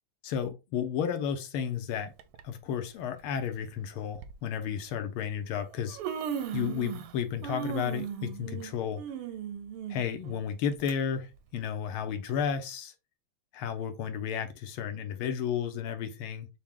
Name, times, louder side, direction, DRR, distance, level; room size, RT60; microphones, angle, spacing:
voice 1, 0.2-2.1 2.4-6.0 6.5-9.0 9.9-12.9 13.5-16.5, left 8 dB, 80° left, 1.6 m, -32 dB
Human voice, 2.2-2.4 3.4-3.5 4.1-4.3 5.3-5.4 5.7-7.1 7.4-10.9 11.3-11.4 12.3-12.4, right 8 dB, 90° right, 1.6 m, -37 dB
6.1 x 2.2 x 3.5 m
omnidirectional pair, 2.4 m